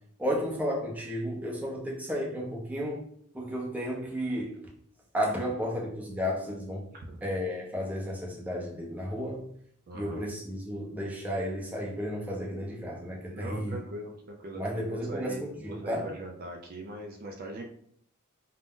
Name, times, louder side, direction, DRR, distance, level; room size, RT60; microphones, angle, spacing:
voice 1, 0.2-3.0 3.3-4.6 5.1-6.8 7.2-9.5 9.9-13.8 14.6-15.5 15.9-16.1, equal, 5° right, -3 dB, 0.6 m, -33 dB
voice 2, 6.9-7.3 9.9-10.2 13.3-17.6, right 1 dB, 45° right, 2 dB, 0.4 m, -41 dB
2.5 x 2.1 x 3.5 m, 0.65 s
head